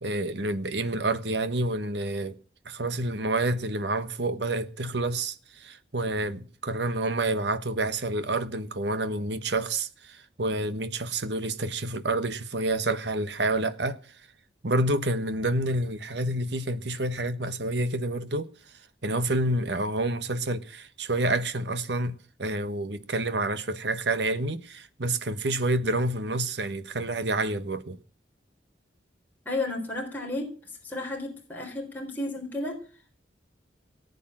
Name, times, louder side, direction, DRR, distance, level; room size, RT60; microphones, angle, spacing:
voice 1, 0.0-2.3 2.6-14.0 14.6-18.5 19.0-28.0, right 2 dB, 70° right, 1.2 m, -28 dB
voice 2, 29.5-32.8, left 2 dB, 10° left, 3.8 m, -33 dB
18.5 x 8.4 x 7.5 m
head